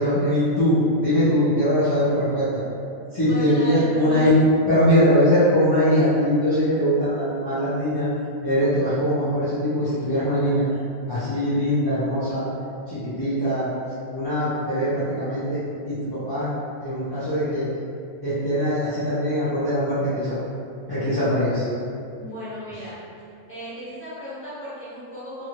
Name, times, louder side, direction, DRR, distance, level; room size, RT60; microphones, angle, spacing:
voice 1, 0.0-2.6 3.1-4.4 4.7-8.1 8.4-10.6 11.1-12.5 12.9-13.7 14.1-15.6 15.8-16.5 16.8-17.7 18.2-20.4 20.9-21.7, equal, 25° left, -15 dB, 0.5 m, -21 dB
voice 2, 3.2-4.1 22.2-22.9 23.5-25.5, equal, 10° left, -13 dB, 1.1 m, -36 dB
2.9 x 2.5 x 2.9 m, 2.5 s
omnidirectional pair, 1.4 m